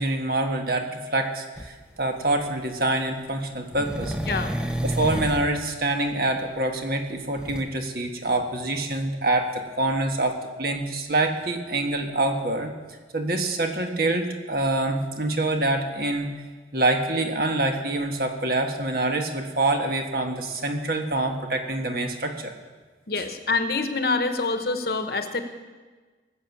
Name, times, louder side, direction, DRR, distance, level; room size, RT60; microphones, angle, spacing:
voice 1, 0.0-4.3 4.8-12.7 13.1-16.3 16.7-22.5, right 2 dB, 55° right, 4 dB, 1.5 m, -26 dB
sound 1, 1.6-1.7 3.7-5.5 7.4-7.6, equal, 5° right, 0.7 m, -29 dB
voice 2, 23.1-25.4, left 3 dB, 55° left, 7 dB, 1.1 m, -26 dB
19.0 x 8.0 x 7.2 m, 1.4 s
head